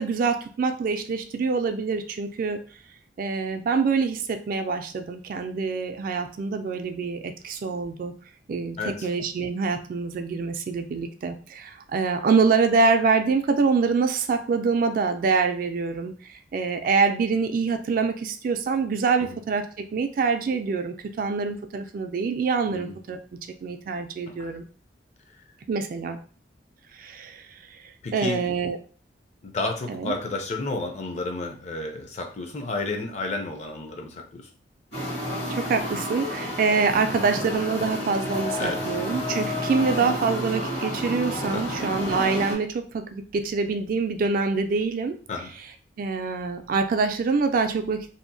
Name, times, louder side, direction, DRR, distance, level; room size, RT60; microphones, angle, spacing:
voice 1, 0.0-2.6 3.2-8.1 8.5-23.2 23.6-24.6 25.7-26.2 26.9-27.8 28.1-28.8 29.9-30.1 35.5-45.2 46.0-48.1, right 4 dB, 50° right, 7 dB, 0.3 m, -25 dB
voice 2, 28.0-28.4 29.4-34.5 38.6-38.8 41.4-41.8 45.3-45.5, left 2 dB, 40° left, 3 dB, 0.5 m, -31 dB
sound 1, 34.9-42.6, left 1 dB, 70° left, 1.2 m, -30 dB
2.7 x 2.0 x 2.6 m, 0.40 s
head